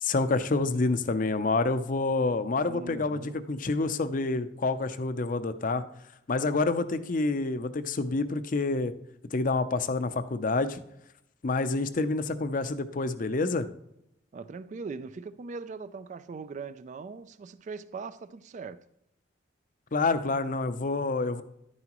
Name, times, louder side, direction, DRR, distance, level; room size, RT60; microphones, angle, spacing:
voice 1, 0.0-5.8 6.3-8.9 9.3-10.8 11.4-13.7 19.9-21.4, left 3 dB, 45° left, 0.6 m, -28 dB
voice 2, 2.6-3.4 14.3-18.8, right 4 dB, 40° right, 0.3 m, -40 dB
11.0 x 9.5 x 3.0 m
head